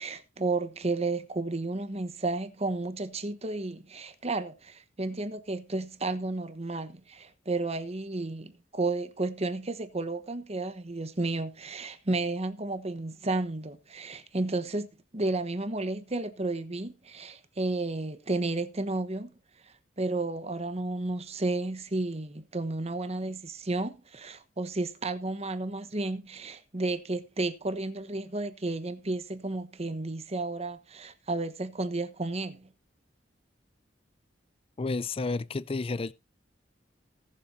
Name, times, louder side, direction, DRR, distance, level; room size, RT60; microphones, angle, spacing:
voice 1, 0.0-14.9 15.1-19.3 20.0-32.7, right 2 dB, 35° right, 1.1 m, -32 dB
voice 2, 34.8-36.1, left 3 dB, 30° left, 0.5 m, -31 dB
18.5 x 7.3 x 2.7 m
head